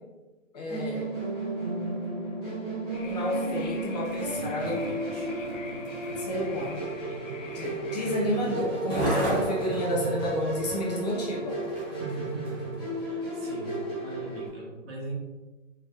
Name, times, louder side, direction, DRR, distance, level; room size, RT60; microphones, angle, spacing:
voice 1, 0.5-1.1 3.0-4.8 6.2-6.8 7.5-11.6, left 1 dB, 30° left, -3 dB, 0.7 m, -30 dB
Musical instrument, 0.7-14.5, right 2 dB, 10° left, 1.1 m, -34 dB
sound 1, 2.9-8.3, left 5 dB, 65° left, 0.7 m, -46 dB
Skateboard, 3.9-12.7 13.4-13.5, right 1 dB, 10° right, 0.7 m, -36 dB
voice 2, 4.3-5.3 11.9-15.1, right 2 dB, 45° right, -4 dB, 1.4 m, -40 dB
4.4 x 3.0 x 2.4 m, 1.2 s
figure-of-eight pair, 135°, 40 cm